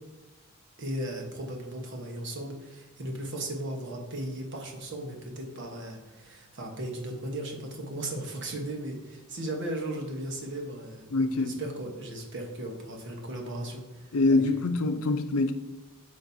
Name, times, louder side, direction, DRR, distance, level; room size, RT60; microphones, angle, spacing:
voice 1, 0.8-14.4, right 1 dB, 55° right, 1.2 m, -36 dB
voice 2, 11.1-11.5 14.1-15.5, left 3 dB, 80° left, 0.6 m, -24 dB
8.7 x 5.3 x 2.7 m
head